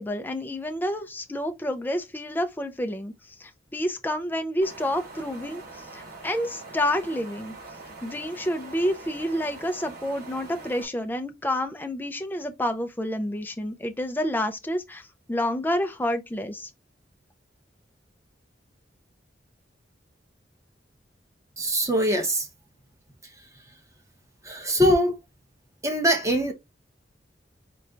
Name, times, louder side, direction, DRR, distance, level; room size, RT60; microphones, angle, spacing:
voice 1, 0.0-3.1 3.4-7.5 8.0-16.7, left 1 dB, 10° left, 0.4 m, -29 dB
Wind, 4.6-10.8, right 3 dB, 55° right, 2.3 m, -43 dB
voice 2, 21.6-22.5 24.4-25.1 25.8-26.5, equal, 15° right, 1.0 m, -22 dB
4.2 x 2.2 x 3.8 m
head